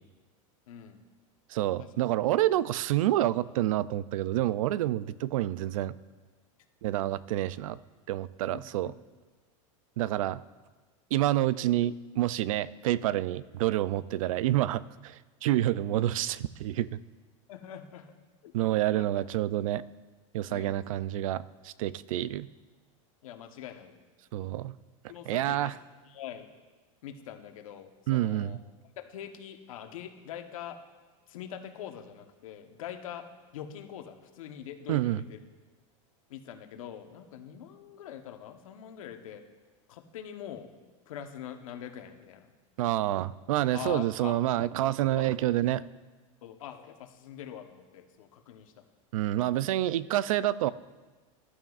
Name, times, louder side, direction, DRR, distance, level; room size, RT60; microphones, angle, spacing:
voice 1, 0.7-1.0 1.8-1.9 8.5-8.9 17.5-18.1 18.4-18.5 18.9-19.1 20.5-20.8 23.2-24.0 24.4-24.5 25.1-25.7 26.0-26.5 27.0-28.6 29.0-30.8 31.3-33.3 33.5-35.4 36.3-39.4 39.9-40.7 41.1-42.5 43.7-44.4 45.1-45.3 46.4-48.8, left 10 dB, 90° left, 6 dB, 1.1 m, -43 dB
voice 2, 1.5-5.9 6.8-7.8 8.1-8.9 10.0-10.4 11.1-17.0 18.5-19.8 20.3-22.5 24.3-24.7 25.3-25.7 28.1-28.6 34.9-35.2 42.8-45.8 49.1-50.7, right 14 dB, 85° right, 18 dB, 0.4 m, -28 dB
14.5 x 11.5 x 2.4 m, 1.3 s
supercardioid pair, 180°, 17 cm